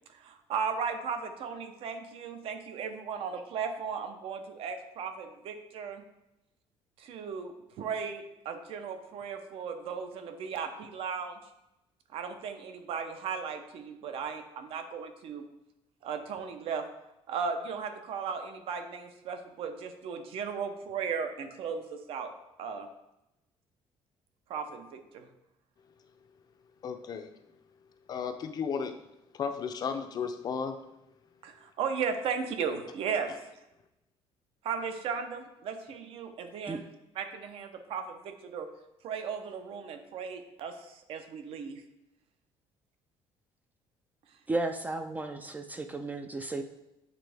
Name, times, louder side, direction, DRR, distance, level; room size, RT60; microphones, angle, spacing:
voice 1, 0.1-6.0 7.0-11.4 12.1-15.5 16.0-16.9 17.3-22.3 22.6-22.9 24.5-25.3 31.4-33.3 34.6-36.9 37.2-38.7 39.0-41.8, right 6 dB, 60° right, 7 dB, 0.7 m, -36 dB
voice 2, 26.8-27.3 28.1-28.9 29.3-30.8, left 6 dB, 40° left, 8 dB, 0.5 m, -34 dB
voice 3, 44.5-46.6, right 2 dB, 15° right, 6 dB, 0.3 m, -34 dB
8.2 x 3.6 x 3.4 m, 0.91 s
cardioid pair, 150°, 11 cm